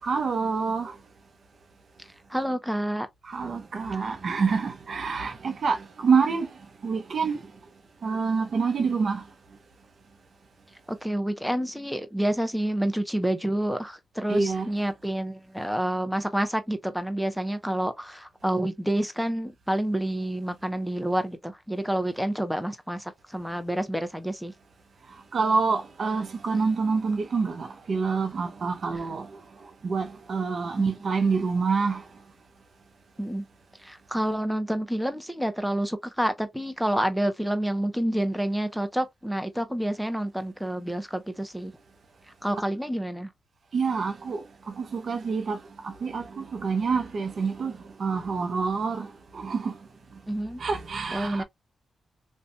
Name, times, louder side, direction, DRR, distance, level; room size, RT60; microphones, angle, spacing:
voice 1, 0.0-0.9 3.3-6.5 6.8-7.4 8.0-9.2 14.3-14.7 25.3-29.3 29.8-32.0 43.7-49.7 50.6-51.4, right 5 dB, 60° right, 0.5 m, -27 dB
voice 2, 2.3-3.1 10.9-24.5 30.8-30.9 33.2-33.4 33.8-41.7 42.4-43.3 50.3-50.6 51.1-51.4, right 1 dB, ahead, 0.6 m, -28 dB
2.5 x 2.2 x 2.5 m
cardioid pair, 55°, 0 cm